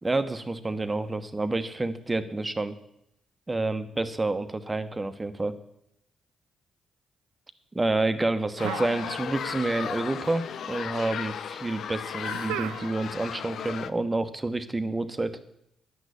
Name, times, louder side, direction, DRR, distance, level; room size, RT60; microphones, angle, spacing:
voice 1, 0.0-2.8 3.5-5.5 7.7-15.4, right 2 dB, 20° right, 10 dB, 1.3 m, -29 dB
sound 1, 8.6-13.9, left 8 dB, 65° left, 0.5 m, -35 dB
sound 2, 8.6-9.6 9.8-10.6 12.2-13.2, right 14 dB, 85° right, 0.4 m, -37 dB
10.5 x 6.3 x 8.4 m, 0.80 s
hypercardioid pair, 50°, 0 cm